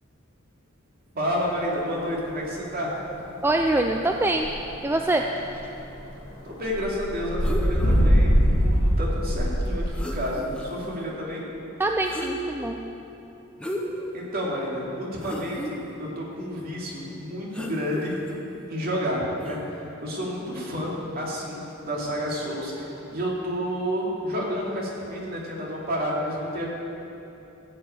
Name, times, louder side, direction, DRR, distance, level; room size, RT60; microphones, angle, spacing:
voice 1, 1.1-2.9 6.4-11.5 14.1-18.2 18.7-26.7, equal, 45° right, -4 dB, 2.6 m, -30 dB
sound 1, 2.0-5.0 5.3-6.0 6.5-9.9, equal, 80° left, 2.2 m, -22 dB
voice 2, 3.4-4.5 4.8-5.3 11.8-12.8, right 2 dB, 10° right, 3 dB, 0.4 m, -24 dB
sound 2, 7.4-8.0 9.7-9.8 9.9-10.9 12.0-12.7 13.6-14.1 14.6-14.7 15.2-15.7 17.5-18.4 19.4-19.6, equal, 5° left, 1.0 m, -34 dB
14.5 x 5.6 x 8.7 m, 2.9 s
head